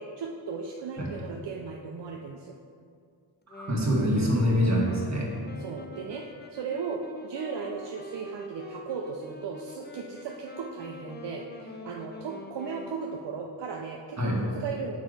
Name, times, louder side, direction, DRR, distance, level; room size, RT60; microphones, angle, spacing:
voice 1, 0.0-2.5 5.6-6.2 6.5-15.0, right 5 dB, 70° right, 0 dB, 0.6 m, -36 dB
Wind instrument woodwind instrument, 3.5-13.0, left 2 dB, 25° left, 0.6 m, -45 dB
voice 2, 3.5-5.3 14.2-14.4, equal, 40° right, -4 dB, 1.6 m, -25 dB
6.3 x 4.8 x 3.9 m, 2.2 s
cardioid pair, 65°, 44 cm